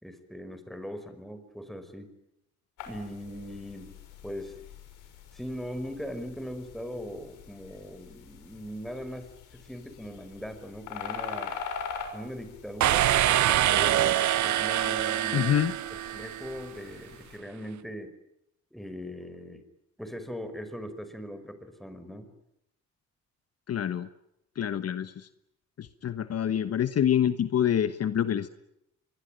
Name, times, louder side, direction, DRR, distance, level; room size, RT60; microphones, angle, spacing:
voice 1, 0.0-2.1 2.9-3.9 4.2-4.6 5.3-11.5 12.1-13.2 13.7-15.5 16.1-18.1 18.7-19.6 20.0-22.3, equal, ahead, 9 dB, 5.2 m, -40 dB
sound 1, 2.8-17.4, left 7 dB, 85° left, 6.2 m, -44 dB
sound 2, 12.8-16.6, right 13 dB, 70° right, 0.9 m, -25 dB
voice 2, 15.3-15.7 23.7-24.1 24.6-25.3 25.8-28.5, left 9 dB, 55° left, 11 dB, 1.3 m, -26 dB
24.5 x 22.5 x 9.2 m, 0.81 s
cardioid pair, 90°, 30 cm